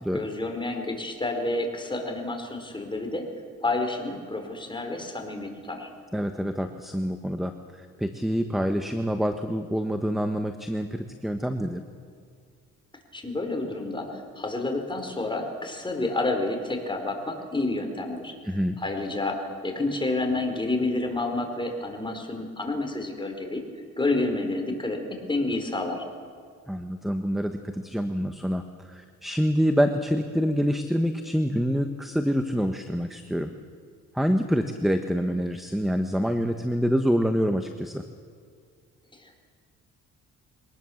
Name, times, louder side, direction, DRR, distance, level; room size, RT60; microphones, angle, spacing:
voice 1, 0.1-3.3 3.6-5.9 13.1-23.6 24.0-26.0 39.1-39.4, left 2 dB, 15° left, 3 dB, 4.3 m, -29 dB
voice 2, 6.1-11.8 18.4-18.8 26.7-33.5 34.1-38.0, equal, ahead, 8 dB, 1.1 m, -26 dB
23.0 x 19.0 x 7.2 m, 2.2 s
cardioid pair, 90°, 30 cm